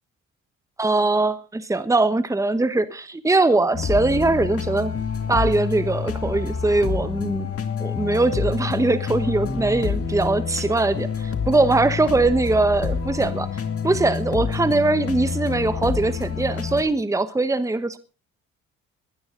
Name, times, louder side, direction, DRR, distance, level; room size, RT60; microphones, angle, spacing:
voice 1, 0.8-4.9 5.3-7.5 7.8-18.0, right 2 dB, 10° right, 1.1 m, -21 dB
sound 1, 3.7-16.8, left 6 dB, 50° left, 2.3 m, -28 dB
20.5 x 12.0 x 3.9 m
cardioid pair, 90°, 30 cm